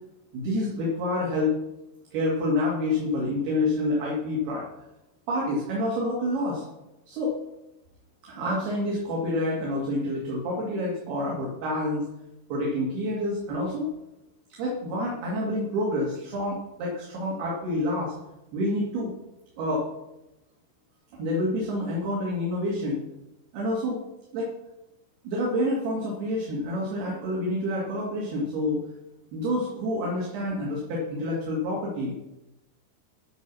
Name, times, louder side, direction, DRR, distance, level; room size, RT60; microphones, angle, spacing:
voice 1, 0.3-1.5 2.1-4.6 5.3-6.6 7.1-7.3 8.2-12.1 12.5-13.9 14.6-18.1 18.5-19.1 19.6-19.8 21.2-23.0 23.5-24.0 24.3-24.5 25.2-28.8 29.3-32.1, left 1 dB, 65° right, -4 dB, 4.0 m, -28 dB
11.0 x 6.9 x 6.2 m, 0.92 s
omnidirectional pair, 5.0 m